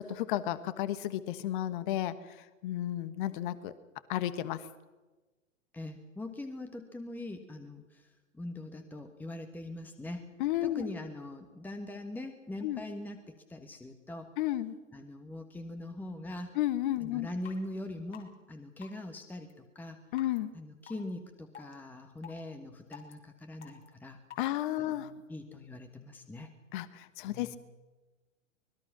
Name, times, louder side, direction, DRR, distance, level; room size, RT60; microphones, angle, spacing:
voice 1, 0.2-2.4 2.6-3.7 4.1-4.7 10.4-10.8 12.6-12.8 14.4-14.7 16.5-17.3 20.1-20.5 24.4-25.1 26.7-27.6, left 13 dB, 40° left, 14 dB, 1.3 m, -32 dB
voice 2, 5.7-10.3 10.6-14.3 14.9-16.5 17.0-20.0 20.5-24.2 24.8-26.5 27.2-27.6, left 1 dB, 5° left, 7 dB, 1.4 m, -42 dB
sound 1, 17.0-17.1 17.4-17.6 18.1-18.2 18.8-19.0 19.5-19.6 20.2-20.4 20.9-21.0 21.5-21.7 22.2-22.4 22.9-23.1 23.6-23.9 24.3-24.4, left 9 dB, 60° left, 4.5 m, -48 dB
25.0 x 21.0 x 6.1 m, 1.2 s
figure-of-eight pair, 110°, 40 cm